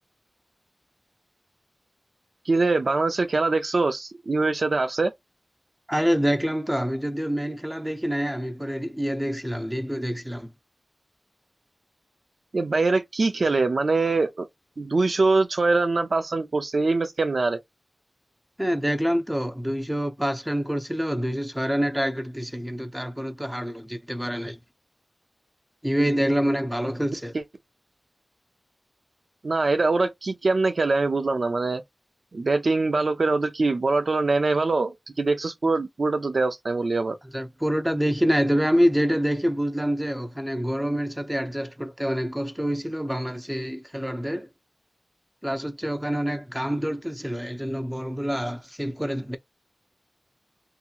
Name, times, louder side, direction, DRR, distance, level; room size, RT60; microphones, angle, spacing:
voice 1, 2.5-5.1 12.5-14.5 14.8-17.6 27.3-27.4 29.4-31.8 32.3-37.2, right 3 dB, 80° right, 0.5 m, -23 dB
voice 2, 5.9-10.5 18.6-24.6 25.8-27.3 37.3-44.5 45.4-49.4, equal, 5° right, 0.7 m, -26 dB
2.8 x 2.7 x 2.4 m
cardioid pair, 45°, 0 cm